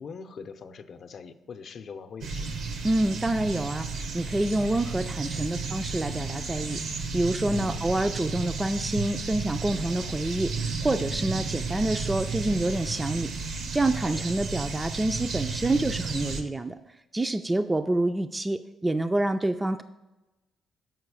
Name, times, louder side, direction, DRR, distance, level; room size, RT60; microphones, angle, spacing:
voice 1, 0.0-2.6 7.4-7.9 14.0-14.3, left 6 dB, 55° left, 9 dB, 0.6 m, -42 dB
sound 1, 2.2-16.4, right 4 dB, 75° right, 0.9 m, -33 dB
voice 2, 2.8-16.8 17.1-19.8, right 2 dB, 15° right, 8 dB, 0.3 m, -27 dB
7.6 x 4.9 x 4.7 m, 1.0 s
cardioid pair, 90°, 0 cm